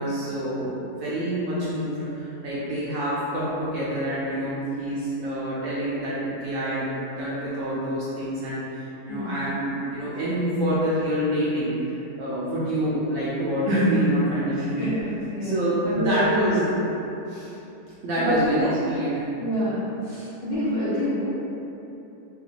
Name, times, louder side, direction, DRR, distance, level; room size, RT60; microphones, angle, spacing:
voice 1, 0.0-14.9 15.4-16.9 18.0-19.3 20.1-20.3, equal, 70° right, -9 dB, 0.8 m, -26 dB
voice 2, 9.1-9.5 14.5-16.6 17.3-17.5 18.2-18.7 19.4-19.9 20.4-21.3, equal, 70° left, -12 dB, 0.6 m, -27 dB
3.1 x 2.9 x 2.4 m, 3.0 s
omnidirectional pair, 1.8 m